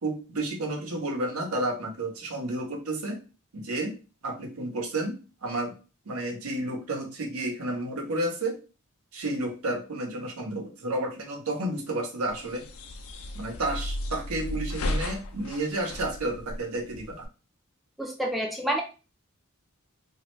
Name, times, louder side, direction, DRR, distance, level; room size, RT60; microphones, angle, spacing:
voice 1, 0.0-3.2 3.5-3.9 4.2-5.7 6.1-8.6 9.1-12.6 13.3-17.2, right 2 dB, 90° right, 2 dB, 0.8 m, -31 dB
sound 1, 12.3-17.3, left 1 dB, 80° left, 0.5 m, -34 dB
voice 2, 18.0-18.8, right 1 dB, ahead, 0 dB, 0.4 m, -28 dB
3.1 x 2.3 x 3.1 m, 0.34 s
head